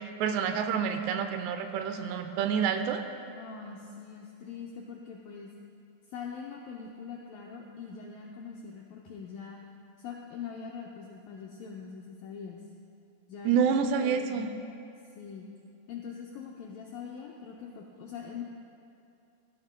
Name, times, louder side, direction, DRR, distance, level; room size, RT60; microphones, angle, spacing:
voice 1, 0.0-3.0 13.5-14.5, right 7 dB, 85° right, 7 dB, 2.7 m, -28 dB
voice 2, 3.4-5.5 6.1-9.6 10.0-12.6 13.3-13.7 14.0-14.5 15.2-15.5 15.9-18.4, left 6 dB, 85° left, -1 dB, 1.9 m, -43 dB
17.0 x 14.0 x 2.2 m, 2.7 s
omnidirectional pair, 4.9 m